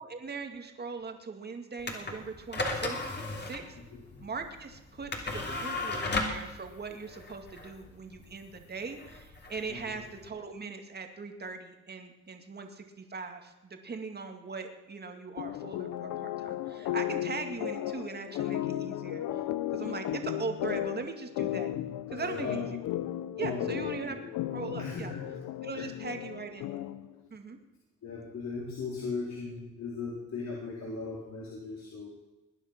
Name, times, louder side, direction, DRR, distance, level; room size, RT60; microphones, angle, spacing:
voice 1, 0.0-3.8 4.2-19.2 19.7-21.7 22.1-22.8 23.4-24.2 24.5-25.1 25.6-26.8 27.3-27.6, right 4 dB, 35° right, 5 dB, 2.2 m, -40 dB
sound 1, 1.8-10.3, left 2 dB, 35° left, 3.2 m, -36 dB
sound 2, 15.4-27.1, left 13 dB, 85° left, 0.8 m, -35 dB
voice 2, 22.1-22.6 23.4-23.8 24.1-24.2 24.8-25.2 25.7-25.9 28.0-32.1, left 4 dB, 65° left, -4 dB, 4.3 m, -38 dB
21.0 x 10.0 x 6.0 m, 1.0 s
cardioid pair, 90°, 30 cm